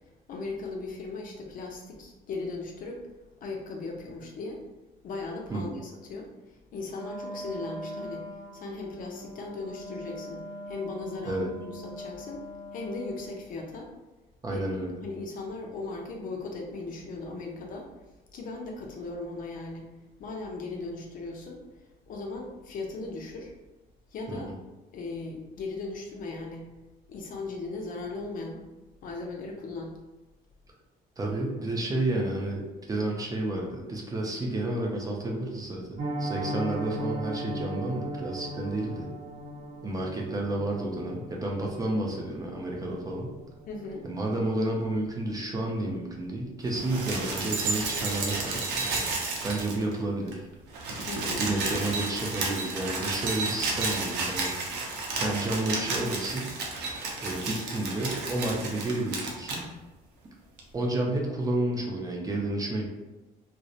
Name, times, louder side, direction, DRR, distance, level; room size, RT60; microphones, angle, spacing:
voice 1, 0.3-3.0 3.4-4.6 5.0-6.3 6.7-8.3 8.5-12.4 12.7-13.9 14.5-14.6 15.0-17.9 18.3-19.9 20.2-21.6 22.1-23.5 24.1-24.5 24.9-26.7 27.1-28.6 29.0-29.9 36.4-36.8 43.7-44.1 51.0-51.5, left 3 dB, 55° left, 0 dB, 0.5 m, -37 dB
voice 2, 5.5-5.8 11.2-11.5 14.4-15.0 24.3-24.6 31.2-39.1 39.8-43.3 44.0-48.9 49.4-50.5 51.4-54.5 55.1-56.5 57.2-59.6 60.7-62.8, right 2 dB, 20° right, -1 dB, 0.4 m, -31 dB
Wind instrument woodwind instrument, 6.9-13.5, equal, 10° left, 0.9 m, -42 dB
Piano, 36.0-46.9 47.1-47.4 47.7-47.8 48.2-48.4 48.7-48.8, equal, 65° right, 0.8 m, -39 dB
sound 1, 46.7-50.0 50.3-50.4 50.6-59.6 60.6-60.7, right 3 dB, 85° right, 0.5 m, -32 dB
2.7 x 2.0 x 2.4 m, 1.1 s
cardioid pair, 110°, 17 cm